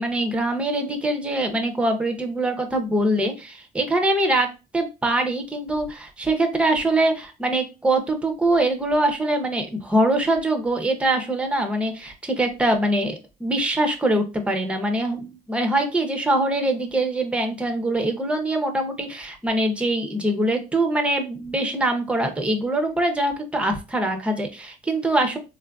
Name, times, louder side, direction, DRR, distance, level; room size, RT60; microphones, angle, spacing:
voice 1, 0.0-25.4, right 1 dB, 5° right, 5 dB, 0.6 m, -23 dB
3.6 x 2.4 x 2.3 m, 0.28 s
cardioid pair, 110°, 17 cm